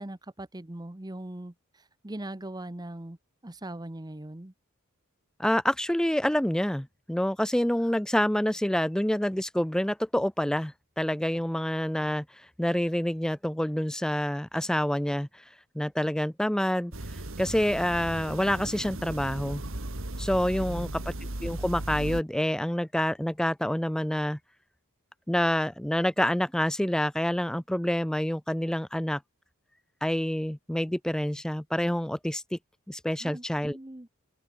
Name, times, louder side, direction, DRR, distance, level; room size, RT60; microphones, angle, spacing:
voice 1, 0.0-3.2 3.4-4.5 20.7-20.9 33.2-34.1, right 1 dB, 20° right, 0.9 m, -40 dB
voice 2, 5.4-12.3 12.6-15.4 15.7-16.9 17.4-19.6 20.2-21.0 21.4-24.4 25.3-29.2 30.0-32.6 32.9-33.8, equal, 5° left, 0.4 m, -27 dB
sound 1, 16.9-22.2, right 1 dB, 65° right, 2.6 m, -36 dB
head